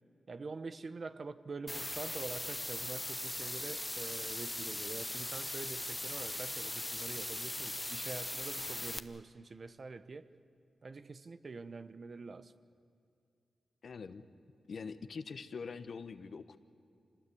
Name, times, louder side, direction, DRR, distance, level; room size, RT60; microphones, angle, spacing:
voice 1, 0.3-10.2 10.8-12.5, right 4 dB, 55° right, 0.9 m, -45 dB
sound 1, 1.7-9.0, left 1 dB, 15° left, 1.0 m, -39 dB
voice 2, 13.8-14.2 14.7-16.6, left 5 dB, 70° left, 1.0 m, -44 dB
25.5 x 19.0 x 8.5 m
cardioid pair, 60°, 0 cm